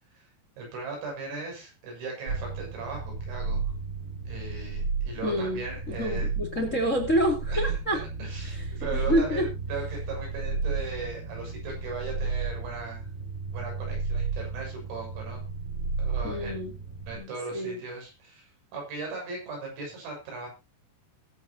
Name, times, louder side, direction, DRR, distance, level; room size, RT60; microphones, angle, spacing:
voice 1, 0.6-3.6 4.3-6.3 7.5-7.7 8.2-13.1 13.5-15.4 16.0-16.6 17.1-20.5, right 3 dB, 85° right, 0 dB, 9.9 m, -38 dB
sound 1, 2.3-17.2, right 4 dB, 40° right, 3.5 m, -33 dB
voice 2, 5.2-8.0 8.4-8.7 8.9-9.5 16.2-16.7 17.1-17.8, equal, 25° left, 4 dB, 1.6 m, -28 dB
20.5 x 8.6 x 2.9 m, 0.27 s
omnidirectional pair, 5.9 m